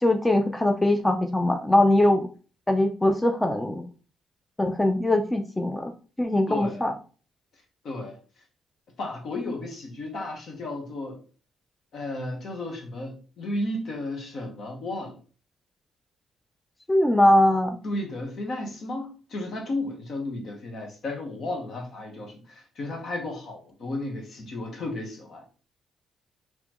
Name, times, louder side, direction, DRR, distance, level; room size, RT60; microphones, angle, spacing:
voice 1, 0.0-2.3 2.7-3.8 4.6-5.9 6.2-6.9 16.9-17.8, left 1 dB, 10° left, 0.4 m, -21 dB
voice 2, 6.5-6.9 7.8-8.2 9.0-11.2 11.9-15.2 17.8-25.4, left 2 dB, 60° left, 1.2 m, -33 dB
4.0 x 3.0 x 3.0 m
cardioid pair, 90°, 0 cm